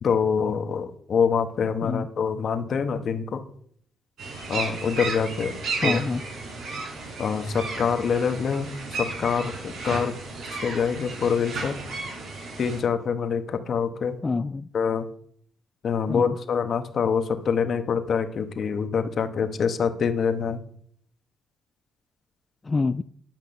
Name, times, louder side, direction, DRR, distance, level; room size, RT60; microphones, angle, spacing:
voice 1, 0.0-3.4 4.5-5.5 5.8-6.0 7.2-8.7 9.0-10.1 10.5-11.7 12.6-14.2 14.7-15.0 15.8-20.6, left 6 dB, 55° left, 8 dB, 1.0 m, -25 dB
sound 1, 4.2-12.8, right 3 dB, 75° right, 4.2 m, -33 dB
voice 2, 5.8-6.2 14.2-14.7 16.1-16.4 22.6-23.0, left 3 dB, 25° left, 11 dB, 0.3 m, -26 dB
10.5 x 5.9 x 5.4 m, 0.63 s
cardioid pair, 90°, 0 cm